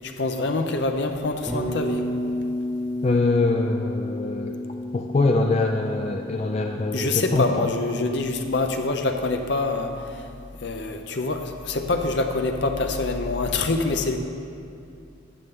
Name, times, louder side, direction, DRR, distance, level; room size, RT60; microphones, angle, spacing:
voice 1, 0.0-2.0 6.9-9.9 10.6-14.2, left 3 dB, 60° left, 5 dB, 0.7 m, -25 dB
Bass guitar, 1.5-9.5, left 1 dB, 15° right, 2.3 m, -32 dB
voice 2, 3.0-4.6 4.9-7.7, left 3 dB, 30° left, 3 dB, 0.3 m, -23 dB
12.5 x 8.0 x 3.7 m, 2.5 s
head